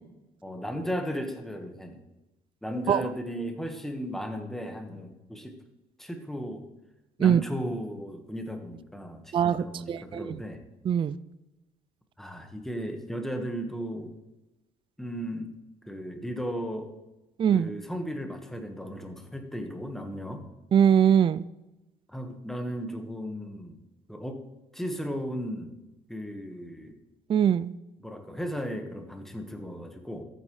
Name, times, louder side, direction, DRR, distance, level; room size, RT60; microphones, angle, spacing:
voice 1, 0.4-2.0 2.6-5.6 6.0-6.6 7.2-10.6 12.2-14.2 15.0-15.5 15.8-16.9 17.5-20.4 22.1-23.8 24.1-24.4 24.7-25.8 26.1-26.9 28.0-30.2, equal, ahead, 5 dB, 1.4 m, -35 dB
voice 2, 9.3-10.4 10.9-11.2 17.4-17.7 20.7-21.5 27.3-27.7, right 8 dB, 30° right, 16 dB, 0.3 m, -22 dB
14.0 x 8.9 x 3.2 m, 1.0 s
cardioid pair, 110°, 17 cm